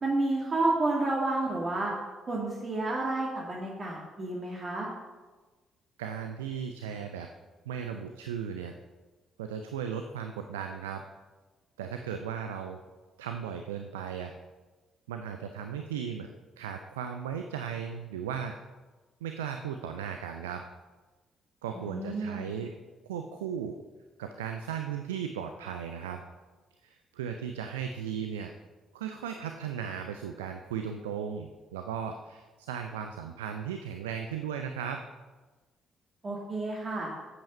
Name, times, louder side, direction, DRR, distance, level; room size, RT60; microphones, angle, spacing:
voice 1, 0.0-1.9 2.3-4.9 21.7-22.5 36.2-37.1, right 2 dB, 35° right, -3 dB, 2.0 m, -30 dB
voice 2, 6.0-7.3 7.7-8.7 9.4-11.0 11.8-12.8 13.2-14.3 15.1-16.3 16.6-18.6 19.2-20.7 21.6-22.7 23.0-23.8 24.2-26.2 26.8-28.5 28.9-35.0, right 8 dB, 75° right, 6 dB, 0.5 m, -36 dB
8.7 x 8.1 x 5.5 m, 1.3 s
figure-of-eight pair, 45°, 0 cm